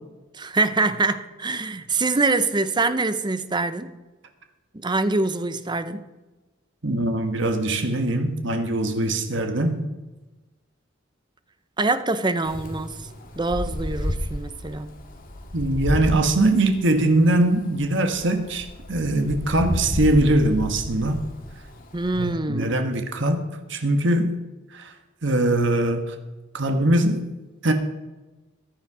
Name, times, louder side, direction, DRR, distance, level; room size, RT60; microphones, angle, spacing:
voice 1, 0.3-3.9 4.7-6.0 11.8-13.1 13.4-14.9 21.9-22.7, right 3 dB, 20° right, 0.7 m, -24 dB
voice 2, 6.8-9.8 15.5-21.2 22.2-23.4 23.7-24.4 24.7-24.9 25.2-26.1 26.5-27.3 27.6-27.7, right 1 dB, 65° right, 1.4 m, -22 dB
Wind, 12.4-22.3, left 1 dB, 45° left, 2.2 m, -32 dB
15.5 x 10.5 x 4.9 m
head